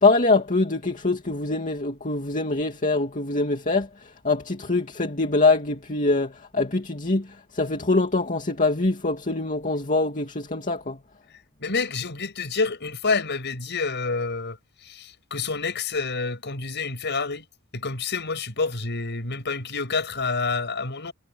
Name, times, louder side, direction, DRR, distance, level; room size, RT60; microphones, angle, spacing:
voice 1, 0.0-7.3 7.5-11.0, left 3 dB, 40° left, 2.5 m, -24 dB
voice 2, 11.6-14.6 14.8-17.4 17.7-21.1, left 4 dB, 55° left, 6.3 m, -28 dB
head